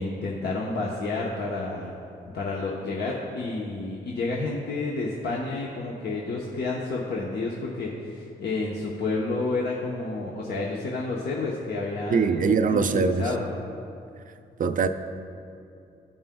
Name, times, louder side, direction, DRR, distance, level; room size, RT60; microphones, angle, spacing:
voice 1, 0.0-1.9 2.3-13.5, left 3 dB, 65° left, -3 dB, 0.9 m, -30 dB
voice 2, 12.1-13.3 14.6-14.9, right 5 dB, 50° right, 8 dB, 0.5 m, -22 dB
14.0 x 5.4 x 2.3 m, 2.6 s
cardioid pair, 60°, 18 cm